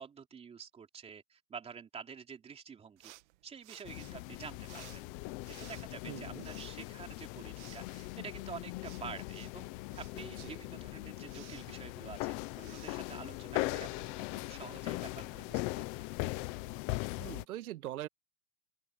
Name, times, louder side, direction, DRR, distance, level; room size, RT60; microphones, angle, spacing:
voice 1, 0.0-3.1 3.4-5.1 5.6-9.7 10.0-16.1, right 6 dB, 15° right, 3.1 m, -48 dB
sound 1, 3.0-13.9, right 19 dB, 50° right, 1.6 m, -59 dB
sound 2, 3.8-17.4, left 20 dB, 20° left, 0.4 m, -40 dB
voice 2, 6.1-6.4 10.4-10.6 17.2-18.1, right 13 dB, 75° right, 1.4 m, -42 dB
open air
supercardioid pair, 150°, 44 cm